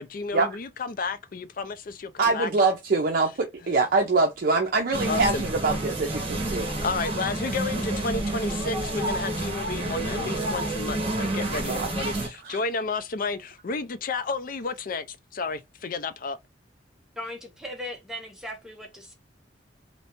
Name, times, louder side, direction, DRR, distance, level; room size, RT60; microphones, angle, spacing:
voice 1, 0.0-2.5 5.1-5.4 6.8-16.4, left 4 dB, 50° left, 0.5 m, -32 dB
voice 2, 2.2-6.7 11.7-12.6, right 3 dB, 55° right, 0.5 m, -24 dB
sound 1, 4.9-12.3, right 2 dB, 30° right, 1.2 m, -29 dB
voice 3, 17.2-19.1, left 1 dB, 5° right, 0.8 m, -38 dB
3.2 x 2.8 x 2.9 m
head